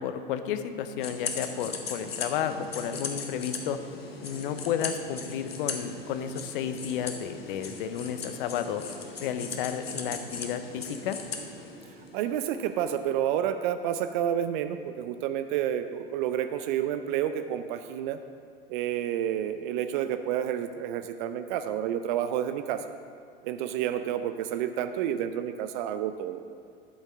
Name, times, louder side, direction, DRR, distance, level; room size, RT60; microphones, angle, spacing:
voice 1, 0.0-3.8 4.2-8.8 9.2-11.2, left 8 dB, 60° left, 9 dB, 0.8 m, -32 dB
sound 1, 1.0-12.2, left 4 dB, 85° left, 1.0 m, -38 dB
sound 2, 4.1-13.3, right 1 dB, 30° right, 2.9 m, -53 dB
voice 2, 12.1-18.2 18.7-22.8 23.4-26.4, right 10 dB, 55° right, 9 dB, 0.5 m, -30 dB
12.5 x 8.3 x 3.6 m, 2.3 s
hypercardioid pair, 85°, 29 cm